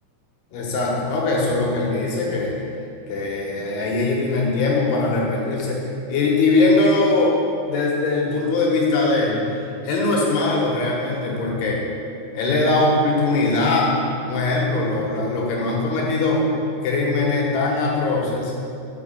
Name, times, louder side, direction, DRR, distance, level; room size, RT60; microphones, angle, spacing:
voice 1, 0.5-2.5 3.1-5.8 6.1-7.3 7.7-9.4 9.8-11.8 12.3-13.9 14.2-16.4 16.8-18.5, left 3 dB, 70° left, -3 dB, 3.0 m, -21 dB
6.3 x 6.0 x 7.3 m, 2.5 s
omnidirectional pair, 5.3 m